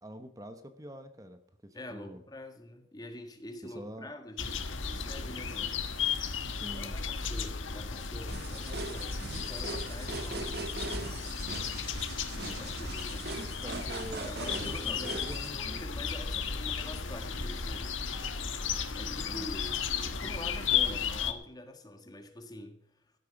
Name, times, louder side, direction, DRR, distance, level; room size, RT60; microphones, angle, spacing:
voice 1, 0.0-2.2 3.6-4.1 6.5-7.0 13.3-14.3 14.8-15.8 19.2-19.5, equal, 20° right, 9 dB, 1.0 m, -45 dB
voice 2, 1.7-5.9 6.7-11.7 12.5-13.3 14.2-18.3 19.0-23.1, left 1 dB, 20° left, 6 dB, 1.6 m, -46 dB
sound 1, 4.4-21.3, left 6 dB, 85° left, 1.4 m, -34 dB
sound 2, 8.3-15.5, right 3 dB, 55° right, 1.6 m, -40 dB
15.5 x 9.2 x 6.0 m, 0.71 s
head